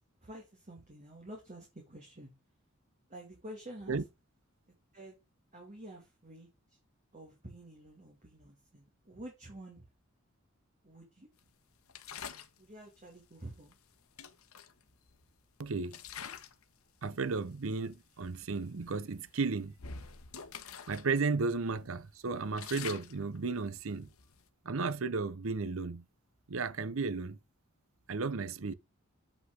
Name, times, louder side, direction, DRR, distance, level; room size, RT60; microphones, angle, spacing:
voice 1, 0.2-2.3 3.1-4.0 4.9-5.2 5.5-6.8 7.1-9.8 10.8-11.3 12.6-13.8, right 1 dB, 35° right, 2.4 m, -49 dB
sound 1, 11.9-12.6 13.7-13.8 14.2-15.4 15.9-16.6 17.0-17.3 17.9-18.0 18.4-18.6 19.1-21.1 21.4-21.5 22.0-24.5, left 7 dB, 85° left, 1.0 m, -46 dB
voice 2, 15.6-16.0 17.0-19.7 20.9-24.1 24.6-26.1 26.5-27.4 28.1-28.7, right 4 dB, 65° right, 0.7 m, -34 dB
7.8 x 5.7 x 3.8 m
head